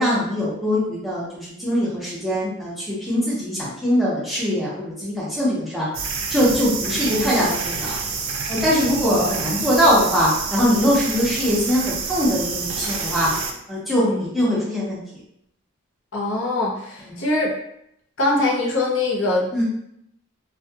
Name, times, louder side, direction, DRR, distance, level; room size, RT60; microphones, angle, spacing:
voice 1, 0.0-5.9 6.3-8.0 8.5-13.3 13.7-15.0 17.1-17.2 19.5-19.6, equal, ahead, -9 dB, 0.7 m, -22 dB
sound 1, 5.9-13.5, right 5 dB, 75° right, 0.4 m, -28 dB
voice 2, 16.1-17.5 18.2-19.6, left 2 dB, 70° left, -2 dB, 0.6 m, -23 dB
2.3 x 2.2 x 2.7 m, 0.76 s
head